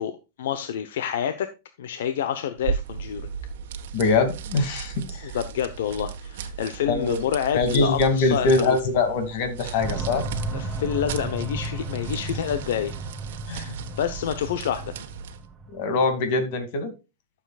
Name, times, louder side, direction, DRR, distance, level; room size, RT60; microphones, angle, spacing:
voice 1, 0.0-1.5 1.8-3.3 5.2-8.8 10.5-12.9 14.0-14.9, left 9 dB, 75° left, 0.9 m, -28 dB
sound 1, 2.6-15.5, right 7 dB, 70° right, 1.2 m, -36 dB
voice 2, 3.9-5.4 6.9-7.2 7.5-10.2 13.5-13.8 15.7-16.9, left 3 dB, 50° left, 2.4 m, -23 dB
sound 2, 9.8-16.1, right 1 dB, 5° right, 1.5 m, -34 dB
12.5 x 7.1 x 2.4 m
supercardioid pair, 155°, 0 cm